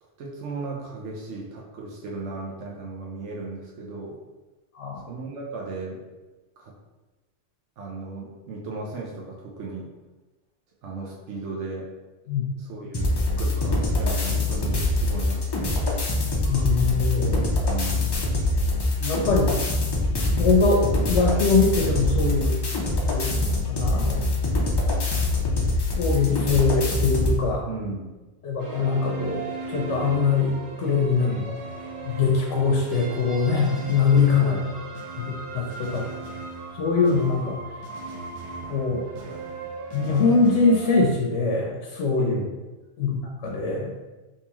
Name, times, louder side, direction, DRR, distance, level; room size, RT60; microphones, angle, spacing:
voice 1, 0.0-4.2 5.1-6.0 6.6-6.7 7.8-9.9 10.8-11.9 12.6-16.0 17.7-18.2 27.7-28.2 31.2-31.6 34.4-34.7 42.2-42.6, right 3 dB, 80° right, -3 dB, 1.0 m, -36 dB
sound 1, 12.9-27.4, left 2 dB, 40° left, 0.3 m, -24 dB
voice 2, 16.4-17.5 19.0-19.6 20.1-22.6 23.1-24.4 25.9-27.7 28.4-31.3 32.0-34.5 35.2-36.1 36.7-37.6 38.7-39.0 39.9-42.3 43.0-43.9, left 4 dB, 80° left, -1 dB, 0.9 m, -23 dB
sound 2, 28.6-41.1, right 4 dB, 45° right, 0.4 m, -37 dB
3.6 x 2.9 x 2.9 m, 1.1 s
omnidirectional pair, 1.2 m